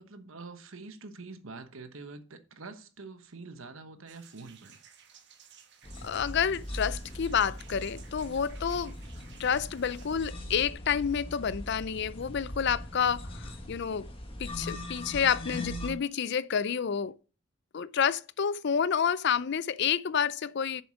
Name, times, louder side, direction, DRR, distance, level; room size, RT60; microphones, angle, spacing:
voice 1, 0.0-4.8, right 3 dB, 70° right, 1.1 m, -46 dB
sound 1, 4.1-10.3, right 8 dB, 50° right, 1.3 m, -56 dB
sound 2, 5.8-15.9, left 1 dB, 25° left, 1.5 m, -40 dB
voice 2, 6.0-8.9 9.4-14.1 14.4-17.1 17.7-20.8, left 7 dB, 50° left, 0.4 m, -29 dB
7.6 x 6.9 x 5.0 m
head